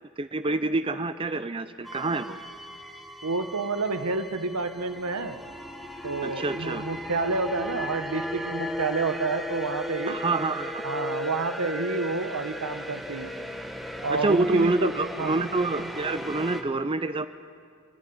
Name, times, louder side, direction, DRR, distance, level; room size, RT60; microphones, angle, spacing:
voice 1, 0.2-2.4 6.2-6.8 10.1-10.8 14.1-17.3, right 2 dB, 25° right, 10 dB, 0.5 m, -27 dB
sound 1, 1.8-16.6, equal, ahead, 1.3 m, -36 dB
voice 2, 3.2-5.4 6.0-10.1 10.8-13.3 14.0-14.9 15.2-15.4, right 3 dB, 90° right, 8 dB, 1.2 m, -29 dB
29.0 x 11.0 x 9.4 m, 2.1 s
head